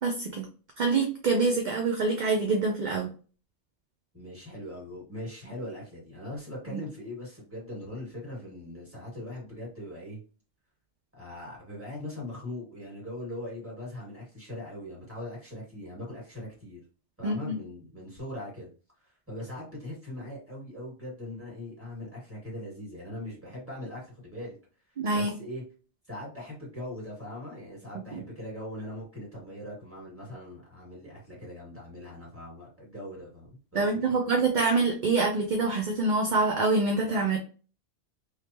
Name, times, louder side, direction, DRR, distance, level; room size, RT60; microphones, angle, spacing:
voice 1, 0.0-0.4 0.8-3.1 6.7-6.8 17.2-17.5 25.0-25.3 28.1-28.2 33.7-37.4, right 3 dB, 50° right, 2 dB, 0.6 m, -26 dB
voice 2, 4.1-10.2 11.2-16.8 17.2-18.7 19.0-24.5 25.1-25.6 26.1-34.2, left 1 dB, 10° right, -5 dB, 2.1 m, -40 dB
3.3 x 3.2 x 2.9 m, 0.37 s
omnidirectional pair, 1.2 m